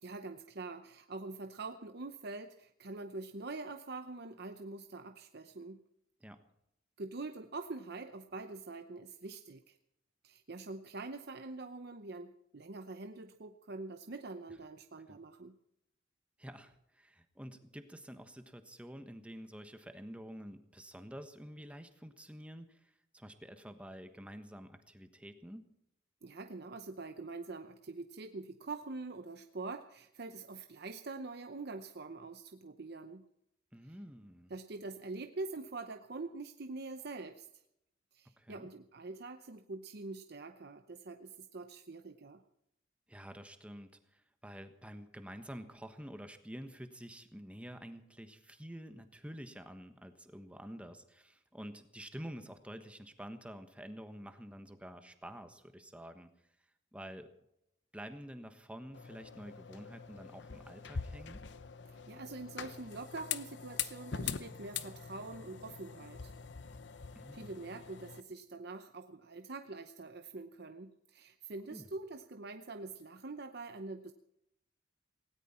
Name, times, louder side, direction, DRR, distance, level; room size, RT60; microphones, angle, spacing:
voice 1, 0.0-5.8 7.0-9.8 10.2-15.5 26.2-33.2 34.5-37.5 38.1-42.4 61.9-66.3 67.3-74.1, right 3 dB, 55° right, 7 dB, 0.8 m, -45 dB
voice 2, 16.4-25.6 33.7-34.5 38.4-38.7 43.1-56.3 56.9-57.3 57.9-61.4 67.1-67.6 71.7-71.9, equal, 5° right, 8 dB, 1.3 m, -49 dB
sound 1, 58.9-68.2, left 7 dB, 65° left, 0.8 m, -43 dB
19.0 x 17.5 x 4.3 m, 0.79 s
head